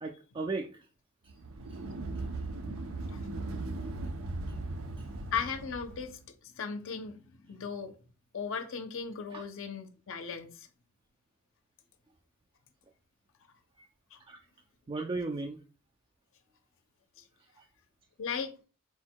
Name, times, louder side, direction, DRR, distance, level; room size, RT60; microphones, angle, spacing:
voice 1, 0.0-0.8 3.9-4.0 5.0-5.1 9.3-9.4 13.8-13.9 14.3-14.4 14.9-15.6, right 3 dB, 20° right, 0.3 m, -36 dB
sound 1, 1.3-6.1, right 2 dB, 65° right, 0.6 m, -38 dB
voice 2, 5.3-7.9 8.3-10.7 14.1-14.2 17.2-17.3 18.2-18.6, left 6 dB, 60° left, 0.6 m, -37 dB
4.5 x 2.1 x 4.4 m
head